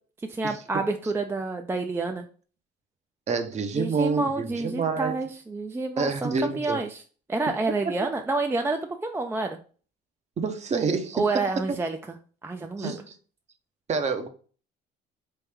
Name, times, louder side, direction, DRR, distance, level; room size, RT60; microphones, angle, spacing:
voice 1, 0.3-2.3 3.8-7.0 7.3-9.6 11.1-12.0 12.4-13.0, right 3 dB, 15° right, 0.4 m, -28 dB
voice 2, 3.3-5.2 6.0-6.8 7.7-7.9 10.4-11.3 12.8-13.0 13.9-14.3, right 4 dB, 35° right, 0.7 m, -27 dB
3.2 x 3.1 x 3.4 m
cardioid pair, 95°, 19 cm